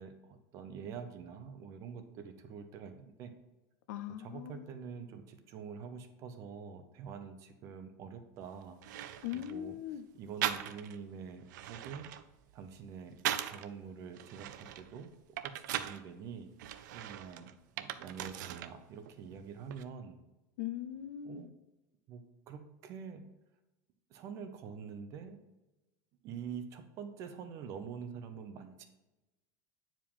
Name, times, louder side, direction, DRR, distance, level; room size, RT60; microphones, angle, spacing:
voice 1, 0.0-3.3 4.2-8.8 9.3-9.8 10.1-12.1 12.5-13.2 13.5-15.1 15.4-16.5 16.9-20.2 21.2-21.5 22.1-22.2 22.5-23.3 24.1-25.4 26.2-28.9, right 6 dB, 30° right, 0.6 m, -46 dB
voice 2, 3.9-4.7 9.2-10.1 20.6-21.5, left 11 dB, 65° left, 0.5 m, -40 dB
sound 1, 8.4-8.5 8.8-9.6 10.4-11.0 11.4-13.7 14.1-16.0 16.6-18.7 19.0-19.8, right 12 dB, 75° right, 0.5 m, -39 dB
8.8 x 4.9 x 3.6 m
supercardioid pair, 180°, 10 cm